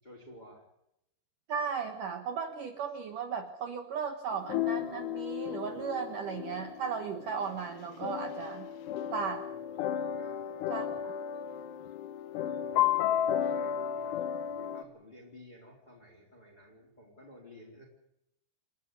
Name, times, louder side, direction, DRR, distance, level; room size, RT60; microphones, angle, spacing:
voice 1, 0.0-0.7 9.2-10.9 12.3-14.2 14.5-17.8, left 1 dB, 10° left, -3 dB, 4.2 m, -54 dB
voice 2, 1.5-8.7 9.1-9.5 10.7-11.1, right 6 dB, 60° right, 6 dB, 2.4 m, -36 dB
sound 1, 4.3-14.8, left 10 dB, 70° left, 3.1 m, -33 dB
29.0 x 11.5 x 9.7 m, 0.81 s
omnidirectional pair, 5.2 m